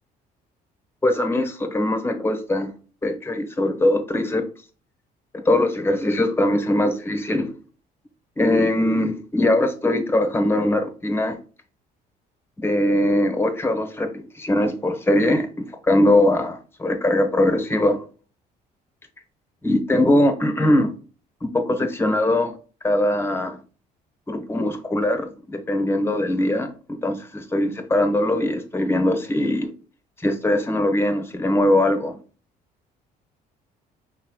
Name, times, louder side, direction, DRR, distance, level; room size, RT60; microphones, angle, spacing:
voice 1, 1.0-2.7 3.0-4.5 5.3-7.5 8.4-11.4 12.6-18.0 19.6-20.9 21.4-22.6 22.8-23.6 24.3-26.7 27.0-29.7 30.2-32.2, left 1 dB, 15° left, 1.1 m, -21 dB
5.7 x 4.1 x 2.2 m
cardioid pair, 110°, 17 cm